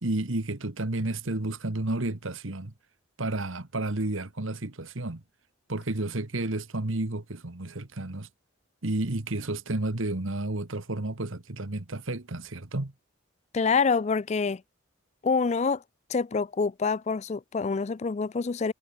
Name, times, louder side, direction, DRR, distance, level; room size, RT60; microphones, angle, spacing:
voice 1, 0.0-2.7 3.2-5.2 5.7-8.3 8.8-12.9, right 2 dB, 70° right, 1.6 m, -31 dB
voice 2, 13.5-14.6 15.2-15.8 16.1-18.7, left 4 dB, 30° left, 0.3 m, -26 dB
head